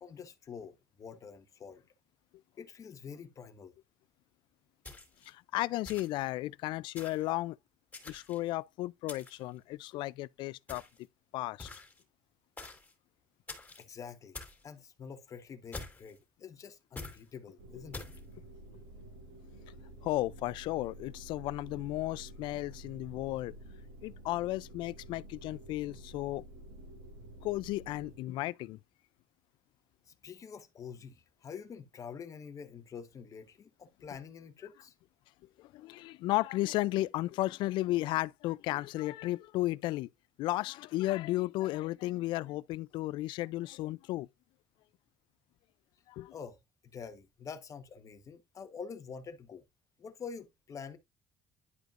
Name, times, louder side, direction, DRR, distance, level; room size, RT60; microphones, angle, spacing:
voice 1, 0.0-1.8 2.6-3.7 13.8-18.1 30.1-34.9 46.3-49.6 50.0-51.0, left 6 dB, 40° left, 1.2 m, -47 dB
sound 1, 4.8-5.3 5.8-6.3 7.0-7.3 7.9-8.5 9.1-9.5 10.7-11.0 11.6-12.0 12.6-12.9 13.5-13.8 14.3-14.6 15.7-16.2 17.0-17.2 17.9-18.2, left 3 dB, 20° left, 2.9 m, -46 dB
voice 2, 5.3-7.6 8.1-10.8 11.3-11.7 20.0-23.5 24.0-26.4 27.4-28.8 35.6-40.1 40.4-44.3 46.1-46.3, left 17 dB, 75° left, 0.4 m, -34 dB
sound 2, 17.6-28.2, right 1 dB, 90° right, 2.9 m, -50 dB
11.0 x 5.0 x 2.5 m
cardioid pair, 100°, 8 cm